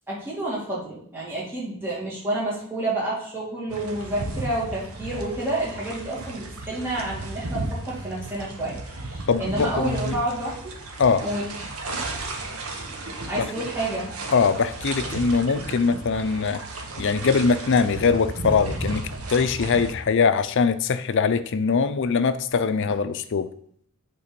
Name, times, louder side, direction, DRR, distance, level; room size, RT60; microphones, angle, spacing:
voice 1, 0.1-10.8 11.2-11.5 13.3-14.1, right 1 dB, 10° right, -7 dB, 2.2 m, -29 dB
sound 1, 3.7-19.9, right 2 dB, 80° right, 1.2 m, -34 dB
voice 2, 9.3-10.2 11.0-11.3 13.4-13.5 14.3-16.6 17.0-23.5, left 5 dB, 60° left, 12 dB, 0.5 m, -22 dB
8.3 x 3.7 x 5.2 m, 0.65 s
head